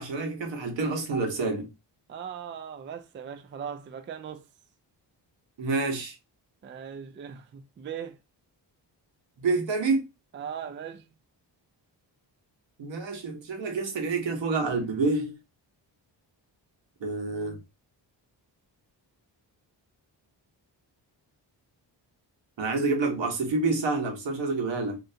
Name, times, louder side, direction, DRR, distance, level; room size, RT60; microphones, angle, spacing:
voice 1, 0.0-1.7 5.6-6.2 9.4-10.0 12.8-15.3 17.0-17.6 22.6-25.0, right 3 dB, 80° right, 1.2 m, -28 dB
voice 2, 2.1-4.4 6.6-8.1 10.3-11.0, right 8 dB, 30° right, 0.3 m, -39 dB
3.2 x 2.8 x 2.7 m
wide cardioid pair, 115°, 44 cm